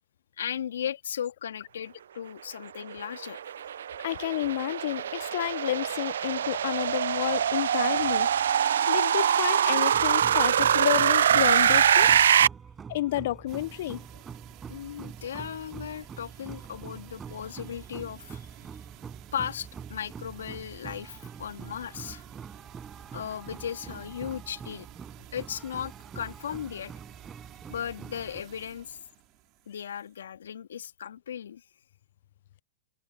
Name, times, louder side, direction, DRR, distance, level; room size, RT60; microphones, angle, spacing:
voice 1, 0.4-3.4 14.7-18.5 19.3-22.2 23.1-24.9 25.3-26.9 27.7-29.0 29.7-31.6, left 9 dB, 80° left, 2.6 m, -36 dB
sound 1, 2.9-12.5, right 9 dB, 75° right, 0.4 m, -23 dB
voice 2, 4.0-8.3 8.9-12.1 12.9-14.1, left 15 dB, 65° left, 0.5 m, -30 dB
sound 2, 9.9-28.4, right 6 dB, 20° right, 5.7 m, -45 dB
sound 3, 13.5-30.2, right 20 dB, 45° right, 3.9 m, -52 dB
hypercardioid pair, 110°, 0 cm